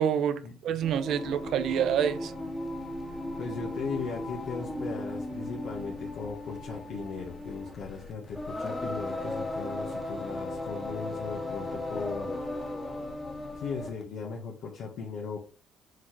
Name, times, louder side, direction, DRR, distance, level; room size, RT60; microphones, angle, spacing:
voice 1, 0.0-2.3, right 9 dB, 60° right, 0.7 m, -27 dB
Singing, 0.8-14.0, left 2 dB, 15° left, 1.7 m, -36 dB
voice 2, 3.4-12.4 13.5-15.4, left 5 dB, 60° left, 1.6 m, -38 dB
7.2 x 4.1 x 3.4 m
cardioid pair, 130°, 0 cm